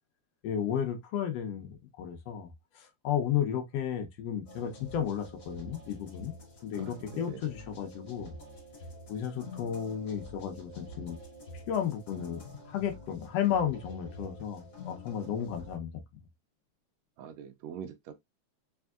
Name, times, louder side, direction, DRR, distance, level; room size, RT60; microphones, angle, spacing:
voice 1, 0.4-6.4 6.6-8.3 9.1-11.2 11.7-15.9, left 9 dB, 70° left, 1.7 m, -33 dB
sound 1, 4.5-15.8, left 2 dB, 45° left, 2.0 m, -48 dB
voice 2, 6.8-7.4 17.2-18.1, right 8 dB, 75° right, 1.6 m, -44 dB
4.5 x 3.4 x 2.3 m
omnidirectional pair, 3.3 m